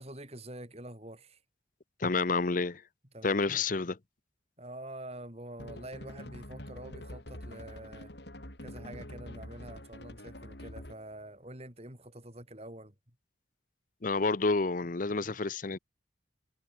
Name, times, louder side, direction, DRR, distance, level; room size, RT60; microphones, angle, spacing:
voice 1, 0.0-1.4 3.1-3.8 4.6-8.1 8.6-12.9, right 1 dB, 35° right, 7.2 m, -46 dB
voice 2, 2.0-2.8 3.2-4.0 14.0-15.8, left 3 dB, 45° left, 0.7 m, -29 dB
sound 1, 5.6-11.1, left 1 dB, 60° left, 5.3 m, -46 dB
head